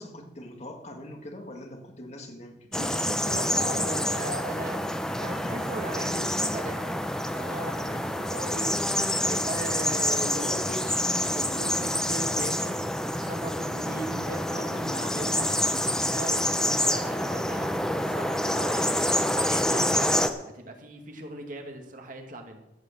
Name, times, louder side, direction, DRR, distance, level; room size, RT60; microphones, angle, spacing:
voice 1, 0.0-3.6 7.8-8.1, left 1 dB, 40° left, 3 dB, 1.8 m, -43 dB
sound 1, 2.7-20.3, left 1 dB, 5° left, 0.7 m, -27 dB
voice 2, 2.8-4.8 5.2-16.6 16.8-18.9 19.3-22.6, right 1 dB, 45° right, 3 dB, 2.0 m, -38 dB
14.5 x 6.3 x 7.6 m, 0.91 s
head